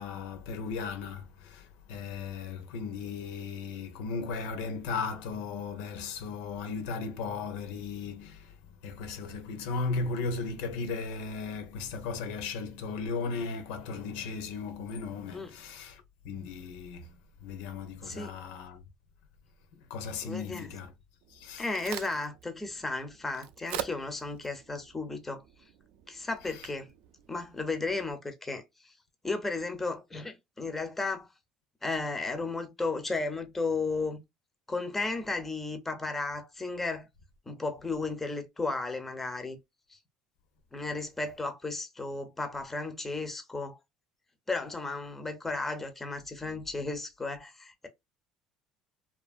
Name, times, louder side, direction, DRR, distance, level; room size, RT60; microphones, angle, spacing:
voice 1, 0.0-8.5 8.8-18.8 19.9-20.9 21.3-21.7 26.5-26.7 40.8-40.9, left 4 dB, 85° left, 0.6 m, -36 dB
voice 2, 20.2-20.7 21.6-25.4 26.1-26.9 27.3-28.6 29.2-31.3 31.8-34.2 34.7-37.1 37.5-39.6 40.7-43.8 44.5-47.9, left 3 dB, 10° left, 0.5 m, -34 dB
Crack, 21.2-28.1, right 11 dB, 70° right, 0.4 m, -45 dB
2.8 x 2.4 x 2.3 m
cardioid pair, 145°, 2 cm